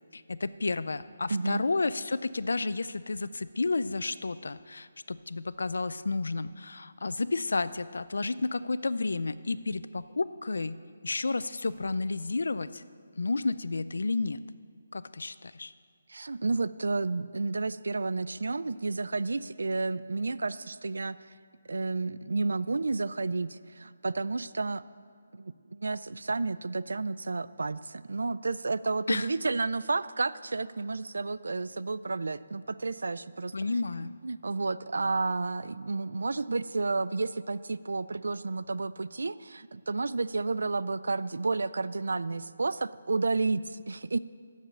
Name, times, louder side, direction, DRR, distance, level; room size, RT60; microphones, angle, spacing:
voice 1, 0.1-12.8 13.2-14.4 14.9-15.7 29.1-29.3 33.5-34.1, left 3 dB, 85° left, 15 dB, 0.4 m, -31 dB
voice 2, 1.3-1.6 16.1-21.2 21.7-24.8 25.3-33.5 34.2-44.2, right 3 dB, 85° right, 17 dB, 0.3 m, -31 dB
8.7 x 7.4 x 7.2 m, 2.1 s
hypercardioid pair, 175°, 0 cm